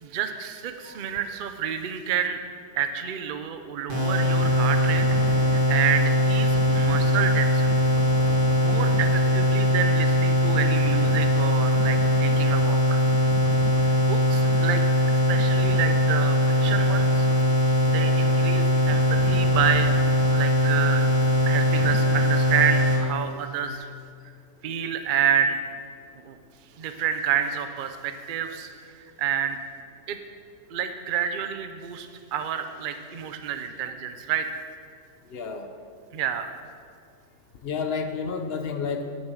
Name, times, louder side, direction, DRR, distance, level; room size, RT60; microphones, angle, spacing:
voice 1, 0.0-2.4 2.8-7.8 8.6-13.0 14.0-14.8 15.1-17.3 17.9-19.9 20.3-21.0 21.4-23.9 24.6-25.6 26.2-26.4 26.8-29.6 30.1-30.2 30.7-34.6 36.1-36.5, right 8 dB, 75° right, 8 dB, 0.4 m, -29 dB
sound 1, 3.9-23.0, equal, 30° right, 2.2 m, -21 dB
voice 2, 35.3-35.7 37.6-39.1, left 5 dB, 55° left, 6 dB, 0.7 m, -32 dB
9.7 x 8.8 x 6.1 m, 2.2 s
omnidirectional pair, 1.8 m